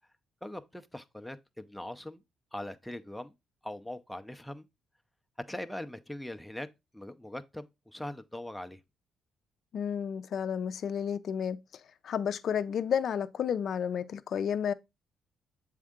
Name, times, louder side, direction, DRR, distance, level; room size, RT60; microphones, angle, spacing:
voice 1, 0.4-2.2 2.5-3.3 3.6-4.7 5.5-6.7 6.9-8.8, left 1 dB, 5° left, 0.6 m, -41 dB
voice 2, 9.7-11.6 12.0-14.7, left 8 dB, 60° left, 0.5 m, -31 dB
7.6 x 3.6 x 3.6 m
cardioid pair, 105°, 0 cm